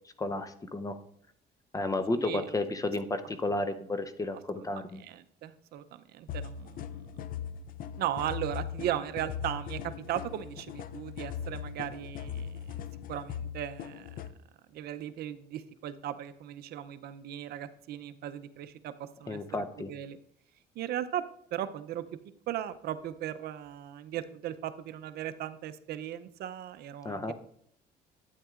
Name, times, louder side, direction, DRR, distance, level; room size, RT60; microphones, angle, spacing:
voice 1, 0.2-1.0 1.7-5.0 19.3-19.9 27.0-27.3, left 2 dB, 20° left, 10 dB, 0.7 m, -32 dB
voice 2, 2.1-2.4 3.5-3.6 4.6-4.7 5.0-7.2 8.0-14.1 14.7-19.4 19.8-20.2 20.8-21.2 21.5-22.0 22.5-27.2, right 11 dB, 70° right, 11 dB, 0.6 m, -37 dB
sound 1, 6.3-14.3, left 8 dB, 55° left, 0.4 m, -39 dB
12.0 x 8.8 x 2.4 m, 0.67 s
cardioid pair, 110°, 17 cm